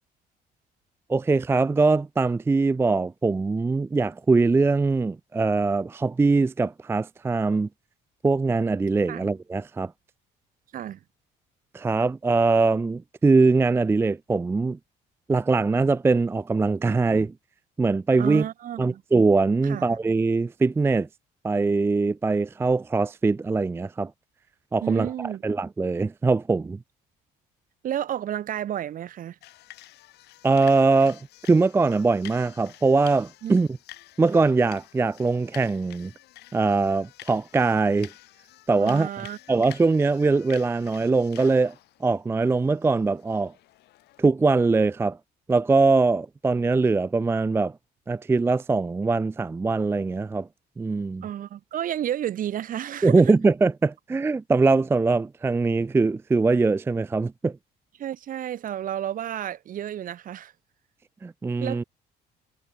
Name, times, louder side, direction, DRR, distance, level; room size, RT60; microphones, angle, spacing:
voice 1, 1.1-7.7 8.2-9.9 11.7-14.8 15.3-17.3 17.8-18.4 18.8-21.1 21.4-24.1 24.7-26.8 30.4-31.2 31.5-33.7 34.2-36.1 36.5-38.1 38.7-41.7 42.0-43.5 44.2-45.2 45.5-47.8 48.1-50.5 50.8-51.2 53.0-57.6 61.2-61.8, right 3 dB, 15° right, 0.4 m, -22 dB
voice 2, 18.2-19.0 19.6-19.8 24.8-25.4 27.8-29.4 33.4-33.5 38.8-39.4 51.2-53.1 58.0-60.5 61.6-61.8, right 11 dB, 55° right, 1.3 m, -31 dB
sound 1, 29.4-44.3, left 16 dB, 80° left, 5.6 m, -49 dB
cardioid pair, 110°, 17 cm